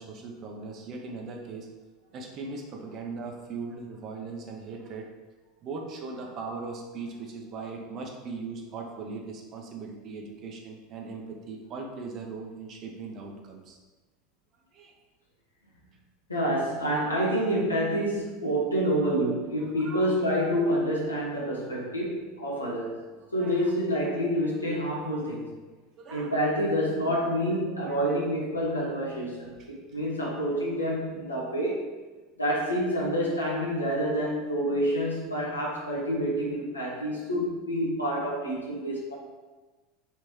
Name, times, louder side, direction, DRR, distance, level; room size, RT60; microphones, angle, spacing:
voice 1, 0.0-1.7 2.1-5.1 5.6-13.8 14.7-15.0 19.6-20.2 23.3-23.7 26.0-26.3 27.0-27.4 27.7-28.2 29.6-29.7, right 4 dB, 40° right, 1 dB, 0.7 m, -39 dB
voice 2, 16.3-23.0 23.3-25.5 26.1-31.8 32.4-39.1, equal, 85° left, -4 dB, 1.0 m, -28 dB
3.4 x 3.0 x 4.6 m, 1.3 s
figure-of-eight pair, 75°, 0 cm